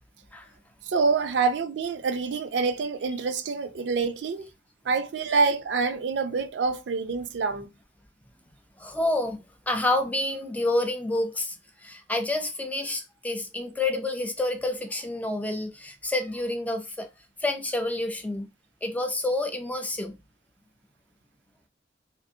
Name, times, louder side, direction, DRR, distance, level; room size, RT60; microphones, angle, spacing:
voice 1, 0.9-4.5 4.9-7.7, right 4 dB, 70° right, 0.4 m, -26 dB
voice 2, 8.8-9.4 9.7-11.6 11.8-17.1 17.4-18.5 18.8-20.1, left 2 dB, 10° left, 0.3 m, -28 dB
2.6 x 2.4 x 2.6 m
head